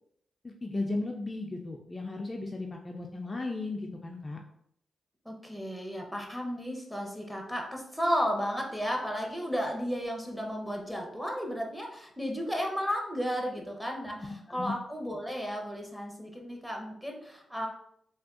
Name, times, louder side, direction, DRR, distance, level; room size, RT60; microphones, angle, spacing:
voice 1, 0.4-4.4 14.6-14.7, left 2 dB, 30° left, 1 dB, 0.3 m, -35 dB
voice 2, 5.2-17.7, equal, 5° right, 1 dB, 0.7 m, -33 dB
3.4 x 2.3 x 2.4 m, 0.72 s
cardioid pair, 55°, 0 cm